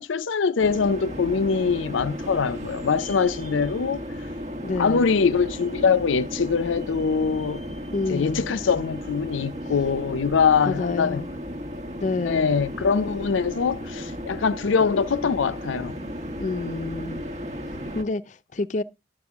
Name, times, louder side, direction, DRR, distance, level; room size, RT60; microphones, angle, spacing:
voice 1, 0.0-4.0 4.8-7.6 8.1-11.2 12.2-15.9, left 5 dB, 90° left, 0.5 m, -23 dB
sound 1, 0.6-18.0, equal, 35° right, 1.1 m, -35 dB
voice 2, 4.6-5.1 7.9-8.5 10.7-11.3 12.0-12.6 16.4-17.2 17.9-18.8, left 3 dB, 40° left, 0.5 m, -28 dB
11.0 x 7.7 x 3.5 m
head